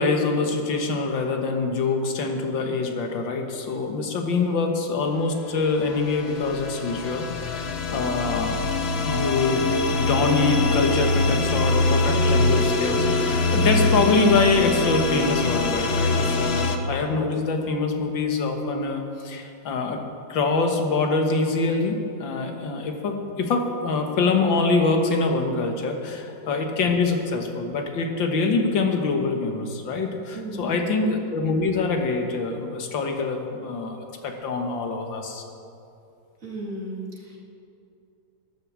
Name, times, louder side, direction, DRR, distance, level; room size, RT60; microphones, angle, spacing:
voice 1, 0.0-8.6 9.0-9.6 9.9-20.0 20.3-34.0 34.2-35.4, left 3 dB, 85° left, 3 dB, 2.1 m, -24 dB
sound 1, 5.8-16.8, left 3 dB, 45° left, 0.9 m, -23 dB
voice 2, 30.3-30.8 36.4-37.4, right 1 dB, 45° right, -3 dB, 2.6 m, -35 dB
12.5 x 10.5 x 7.3 m, 2.6 s
omnidirectional pair, 2.0 m